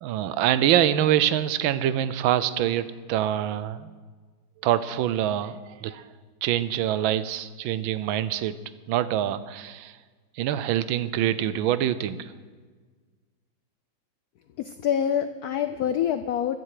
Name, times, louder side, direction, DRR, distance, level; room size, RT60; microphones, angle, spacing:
voice 1, 0.0-3.9 4.6-6.0 6.4-8.5 8.9-9.9 10.4-12.3, right 11 dB, 80° right, 14 dB, 1.3 m, -25 dB
voice 2, 14.6-16.6, left 9 dB, 80° left, 10 dB, 0.8 m, -26 dB
15.0 x 10.0 x 4.9 m, 1.5 s
omnidirectional pair, 2.2 m